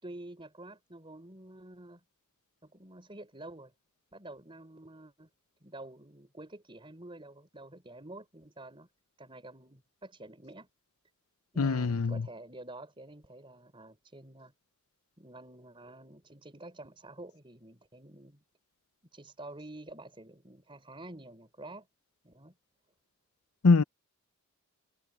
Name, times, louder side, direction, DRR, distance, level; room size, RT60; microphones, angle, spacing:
voice 1, 0.0-2.0 2.6-3.7 4.1-5.3 5.6-8.9 9.2-10.7 11.5-14.5 15.2-18.4 19.1-21.9 22.2-22.5, right 2 dB, 25° right, 4.2 m, -48 dB
voice 2, 11.6-12.3 23.6-23.8, left 4 dB, 75° left, 0.7 m, -23 dB
head